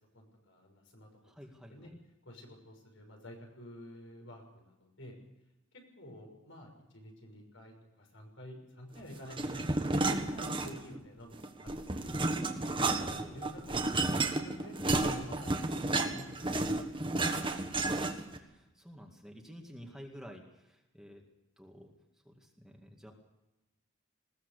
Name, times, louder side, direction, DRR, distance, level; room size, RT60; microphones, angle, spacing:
voice 1, 0.1-1.3 1.7-1.9 2.2-5.2 6.0-12.1 12.7-16.9, left 1 dB, 70° left, 2 dB, 6.2 m, -50 dB
voice 2, 1.2-1.9 12.7-13.4 17.7-21.2 21.6-21.9 22.2-23.1, equal, 5° right, 1 dB, 2.1 m, -51 dB
sound 1, 9.3-11.0 11.3-18.4, right 2 dB, 25° right, 1.5 m, -32 dB
20.5 x 18.5 x 6.8 m, 0.99 s
head